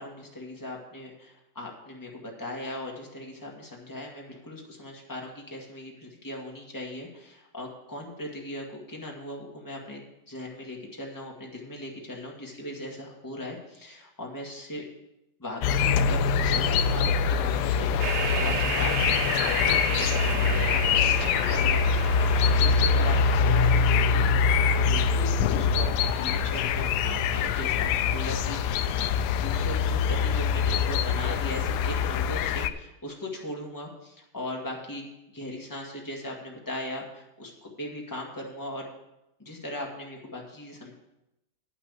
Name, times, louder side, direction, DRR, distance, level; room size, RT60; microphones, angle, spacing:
voice 1, 0.0-14.8 15.4-29.1 29.4-38.8 39.4-40.9, left 1 dB, 10° left, -1 dB, 1.7 m, -39 dB
sound 1, 15.6-32.7, left 6 dB, 85° left, 1.5 m, -24 dB
sound 2, 18.0-22.8, right 5 dB, 75° right, 0.6 m, -33 dB
sound 3, 18.2-23.3, right 3 dB, 45° right, 1.4 m, -43 dB
9.9 x 5.8 x 8.1 m, 0.90 s
omnidirectional pair, 2.4 m